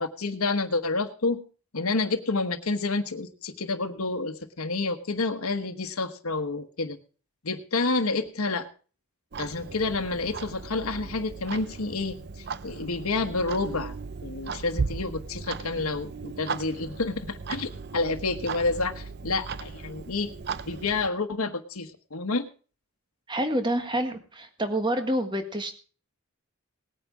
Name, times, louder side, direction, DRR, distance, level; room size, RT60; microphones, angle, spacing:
voice 1, 0.0-1.4 1.7-7.0 7.4-8.7 9.4-12.2 12.6-13.9 14.2-20.3 20.7-22.5, left 3 dB, 90° left, 6 dB, 1.3 m, -29 dB
Clock, 9.3-21.1, right 5 dB, 50° right, 0.5 m, -37 dB
voice 2, 23.3-25.7, right 1 dB, 20° right, 7 dB, 1.5 m, -28 dB
19.0 x 9.2 x 4.8 m, 0.39 s
head